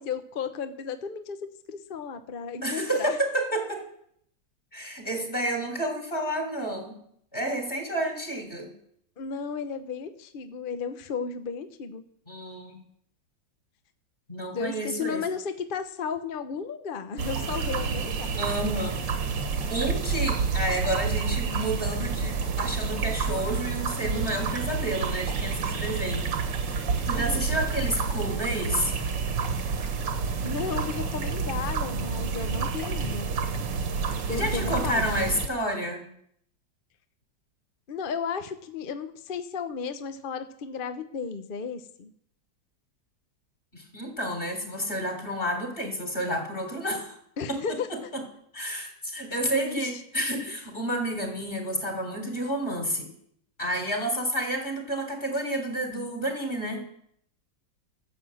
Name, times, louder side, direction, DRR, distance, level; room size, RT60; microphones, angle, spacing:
voice 1, 0.0-3.2 9.2-12.0 14.5-18.3 27.1-27.4 30.4-33.3 34.3-35.0 37.9-42.1 47.4-47.9 49.5-50.0, left 6 dB, 50° left, 9 dB, 0.6 m, -34 dB
voice 2, 2.6-3.8 4.7-7.0 7.3-8.7 12.3-12.8 14.3-15.2 18.4-19.0 19.7-26.3 26.7-28.9 34.3-36.0 43.7-47.2 47.5-47.6 48.5-53.1 53.6-56.8, right 1 dB, 30° left, 2 dB, 3.7 m, -30 dB
sound 1, 17.2-35.5, right 5 dB, 80° right, 1.9 m, -29 dB
12.5 x 7.7 x 7.7 m, 0.69 s
omnidirectional pair, 1.9 m